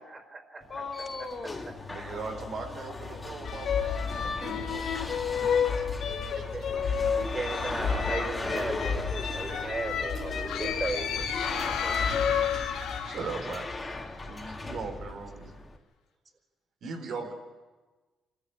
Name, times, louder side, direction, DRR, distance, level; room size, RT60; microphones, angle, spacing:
voice 1, 0.0-0.6 1.4-1.5 6.5-6.6 7.1-11.2, right 3 dB, 30° right, 6 dB, 4.5 m, -36 dB
sound 1, 0.6-15.8, left 3 dB, 20° left, 2.5 m, -39 dB
voice 2, 0.7-1.7 2.9-3.2 6.0-7.6 8.4-12.2, left 4 dB, 40° left, 2 dB, 3.6 m, -41 dB
voice 3, 1.9-5.8 6.3-6.4 11.7-11.9 13.0-13.8 14.3-15.6 16.8-17.3, right 4 dB, 70° right, 3 dB, 4.1 m, -40 dB
sound 2, 3.5-13.0, left 6 dB, 70° left, 4.3 m, -31 dB
sound 3, 10.5-14.1, left 9 dB, 90° left, 1.7 m, -34 dB
26.0 x 14.0 x 10.0 m, 1.3 s
cardioid pair, 90°, 0 cm